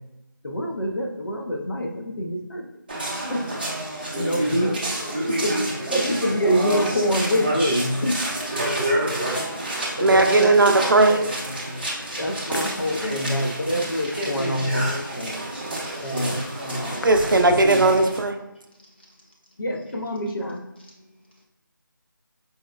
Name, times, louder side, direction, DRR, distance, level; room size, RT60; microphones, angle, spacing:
voice 1, 0.4-2.7 3.3-3.5 4.2-4.7 5.3-8.2 10.0-11.3 12.2-15.4 16.0-17.9 19.6-20.7, equal, 70° left, 2 dB, 0.7 m, -26 dB
sound 1, 2.9-18.2, right 1 dB, 25° right, 0.6 m, -29 dB
voice 2, 4.4-5.4 8.5-9.7 13.0-13.2 14.1-14.7 15.7-16.4 18.8-19.1 20.9-21.1, left 1 dB, 30° left, -1 dB, 0.6 m, -35 dB
voice 3, 10.0-11.2 17.0-18.4, right 2 dB, 70° right, 6 dB, 0.4 m, -17 dB
4.6 x 2.0 x 2.3 m, 0.92 s
figure-of-eight pair, 170°, 11 cm